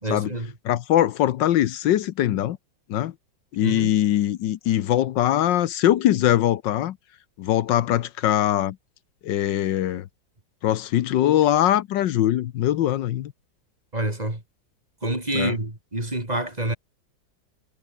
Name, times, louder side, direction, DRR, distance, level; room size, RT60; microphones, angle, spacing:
voice 1, 0.0-0.5 3.6-3.9 13.9-14.4 15.0-16.8, right 1 dB, 20° right, 3.7 m, -27 dB
voice 2, 0.6-2.6 2.9-3.1 3.5-7.0 7.4-8.8 9.2-10.1 10.6-13.3 15.3-15.5, left 12 dB, 80° left, 1.5 m, -22 dB
omnidirectional pair, 2.0 m